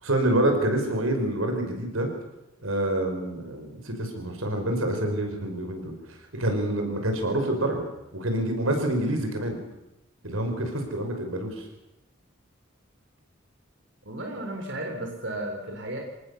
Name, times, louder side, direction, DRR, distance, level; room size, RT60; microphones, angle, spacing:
voice 1, 0.0-2.1 2.6-7.8 8.1-9.6 10.2-11.7, right 1 dB, 85° right, 4 dB, 5.5 m, -27 dB
voice 2, 14.0-16.0, right 1 dB, 60° right, 1 dB, 4.2 m, -34 dB
26.0 x 19.0 x 7.1 m, 0.91 s
head